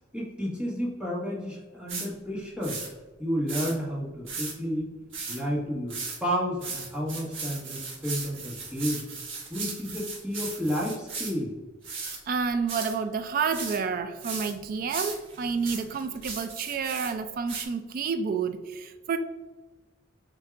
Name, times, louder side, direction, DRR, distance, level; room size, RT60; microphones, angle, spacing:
voice 1, 0.1-2.8 3.2-4.9 5.3-9.0 9.5-11.5, equal, 5° right, 1.4 m, -31 dB
sound 1, 1.9-2.1 2.6-2.9 3.5-3.7 4.3-4.5 5.1-5.4 5.9-6.2 6.6-11.3 11.8-12.2 12.7-13.0 13.5-13.8 14.2-14.5 14.9-17.1 17.5-17.7, right 4 dB, 90° right, 1.1 m, -36 dB
voice 2, 11.9-19.2, right 5 dB, 50° right, 0.3 m, -30 dB
6.6 x 2.7 x 2.4 m
head